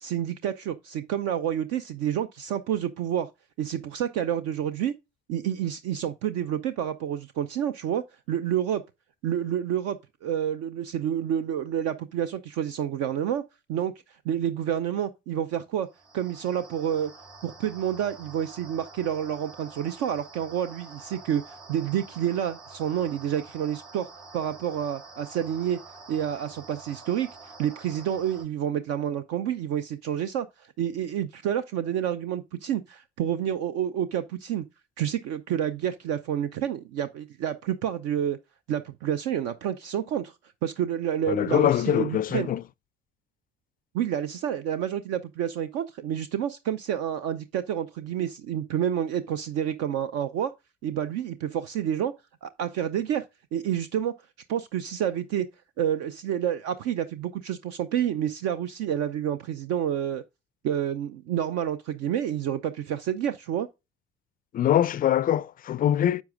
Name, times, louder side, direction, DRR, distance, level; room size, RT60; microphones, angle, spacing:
voice 1, 0.0-3.3 3.6-4.9 5.3-8.8 9.2-13.4 13.7-13.9 14.2-15.9 16.1-17.1 17.4-24.1 24.3-25.8 26.1-34.6 35.0-38.4 38.7-40.3 40.6-42.5 43.9-50.5 50.8-52.1 52.4-53.2 53.5-54.1 54.5-55.5 55.8-60.2 60.6-63.7, right 10 dB, 55° right, 0.6 m, -29 dB
sound 1, 15.9-28.4, right 3 dB, 70° right, 3.6 m, -47 dB
voice 2, 41.3-42.6 64.5-66.2, left 11 dB, 30° left, 0.4 m, -23 dB
10.5 x 7.1 x 2.5 m
figure-of-eight pair, 50°, 31 cm